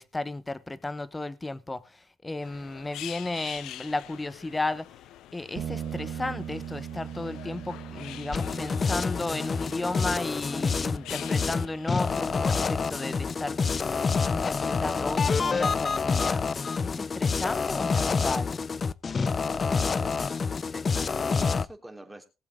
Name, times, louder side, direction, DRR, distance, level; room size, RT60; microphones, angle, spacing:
voice 1, 0.0-4.9 5.3-16.4 16.8-18.6, left 2 dB, 15° left, 1.1 m, -34 dB
sound 1, 2.4-12.4, left 12 dB, 85° left, 0.6 m, -45 dB
sound 2, 5.5-15.0, right 9 dB, 75° right, 1.9 m, -42 dB
sound 3, 8.3-21.7, left 5 dB, 40° left, 0.6 m, -27 dB
voice 2, 19.7-20.2 20.7-22.3, right 1 dB, 10° right, 3.1 m, -44 dB
19.5 x 7.5 x 3.7 m
cardioid pair, 90°, 0 cm